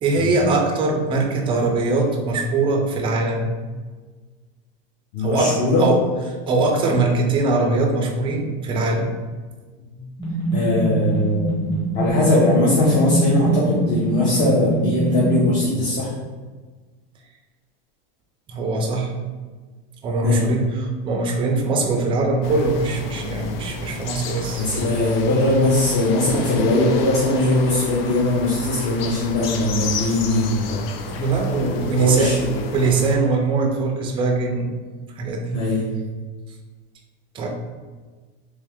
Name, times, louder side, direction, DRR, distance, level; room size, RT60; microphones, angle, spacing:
voice 1, 0.0-3.5 5.2-6.0 6.5-9.1 18.5-19.1 20.0-20.6 21.0-24.6 31.1-32.3 32.7-34.8 35.2-35.6 37.3-37.5, right 3 dB, 20° right, 2 dB, 0.4 m, -21 dB
voice 2, 5.1-5.9 9.8-10.1 10.5-11.7 11.9-16.1 20.2-20.5 24.6-31.3 31.6-32.7 35.5-35.9, left 2 dB, 40° left, -5 dB, 0.8 m, -20 dB
sound 1, 10.2-15.5, right 2 dB, 15° left, 1.0 m, -23 dB
sound 2, 22.4-33.2, left 5 dB, 90° left, 0.5 m, -32 dB
3.2 x 3.2 x 3.5 m, 1.4 s
supercardioid pair, 160°, 29 cm